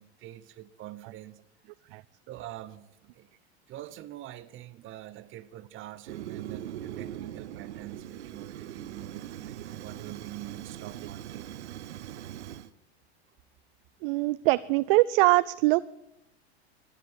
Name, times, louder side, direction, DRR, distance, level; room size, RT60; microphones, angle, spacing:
voice 1, 0.0-1.4 2.3-3.3 3.7-11.5, right 14 dB, 35° right, 1.0 m, -45 dB
Fire, 6.1-12.7, right 11 dB, 80° right, 0.9 m, -41 dB
voice 2, 14.0-16.0, right 21 dB, 55° right, 0.5 m, -23 dB
13.0 x 10.5 x 8.9 m
hypercardioid pair, 105°, 34 cm